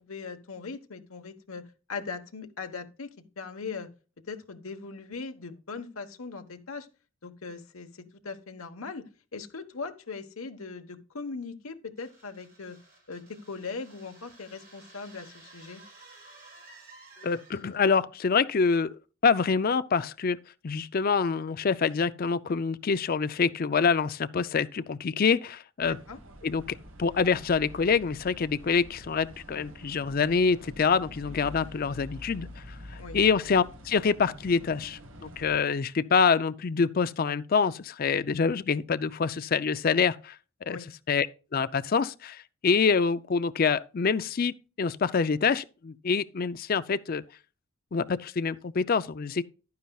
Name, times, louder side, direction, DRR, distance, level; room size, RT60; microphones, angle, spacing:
voice 1, 0.1-3.1 3.4-3.9 4.3-6.9 7.2-12.8 13.1-15.8 25.8-26.2 33.0-33.2 40.6-40.9, left 4 dB, 90° left, 1.2 m, -40 dB
sound 1, 12.0-17.9, right 3 dB, 45° right, 5.3 m, -54 dB
voice 2, 17.2-20.4 20.6-26.0 26.4-40.4 40.7-40.8 41.1-41.3 41.5-47.2 47.9-49.4, left 5 dB, 45° left, 0.4 m, -26 dB
sound 2, 25.8-35.6, equal, 70° right, 1.4 m, -46 dB
11.5 x 9.4 x 2.3 m
head